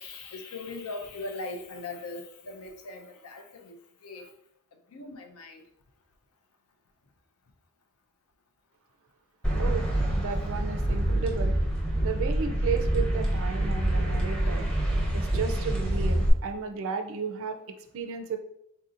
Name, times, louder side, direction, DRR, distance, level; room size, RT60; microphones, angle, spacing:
voice 1, 0.0-4.3 4.9-5.6, left 3 dB, 70° left, 5 dB, 0.5 m, -40 dB
sound 1, 9.4-16.3, right 1 dB, 5° left, 0.6 m, -26 dB
voice 2, 9.6-11.5 12.0-14.6 15.1-17.6 17.9-18.4, right 5 dB, 65° right, 5 dB, 0.4 m, -33 dB
3.8 x 2.7 x 2.4 m, 0.77 s
head